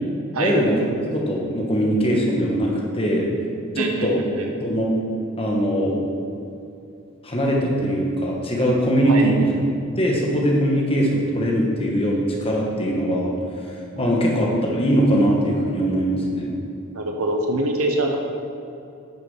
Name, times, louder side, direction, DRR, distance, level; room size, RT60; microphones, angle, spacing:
voice 1, 0.4-0.7 1.1-3.3 3.7-4.2 4.6-5.0 5.4-5.9 7.2-13.3 14.0-16.5, equal, 25° left, -2 dB, 1.5 m, -21 dB
voice 2, 3.8-4.5 9.1-9.3 13.9-14.3 16.9-18.2, right 2 dB, 80° right, 2 dB, 1.1 m, -25 dB
9.1 x 6.8 x 5.7 m, 2.7 s
head